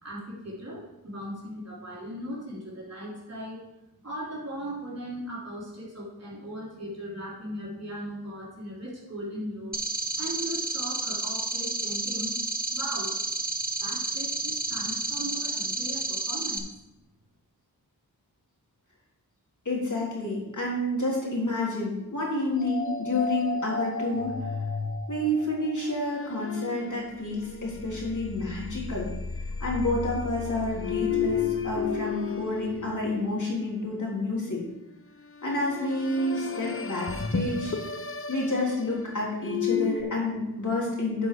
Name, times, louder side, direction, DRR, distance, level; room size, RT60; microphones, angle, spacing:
voice 1, 0.0-3.6 4.0-9.7 10.2-12.4 12.7-13.2 13.8-16.7, equal, 40° right, -6 dB, 3.4 m, -38 dB
sound 1, 9.7-16.6, right 3 dB, 25° right, 1.2 m, -30 dB
voice 2, 19.7-24.5 25.1-29.1 29.6-34.6 35.4-37.7 38.3-41.3, left 2 dB, 50° left, -3 dB, 3.5 m, -29 dB
sound 2, 22.6-33.7 35.2-40.0, left 5 dB, 35° left, 0.7 m, -33 dB
10.5 x 5.4 x 4.8 m, 0.93 s
cardioid pair, 45°, 38 cm